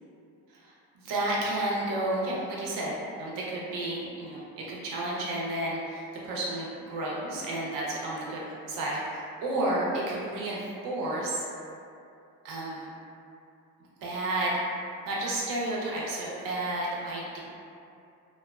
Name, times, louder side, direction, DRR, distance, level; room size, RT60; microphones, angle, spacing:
voice 1, 1.1-11.5 12.4-12.9 14.0-14.6 15.1-17.4, right 1 dB, 80° right, -5 dB, 0.7 m, -31 dB
2.8 x 2.1 x 2.3 m, 2.6 s
cardioid pair, 175°, 33 cm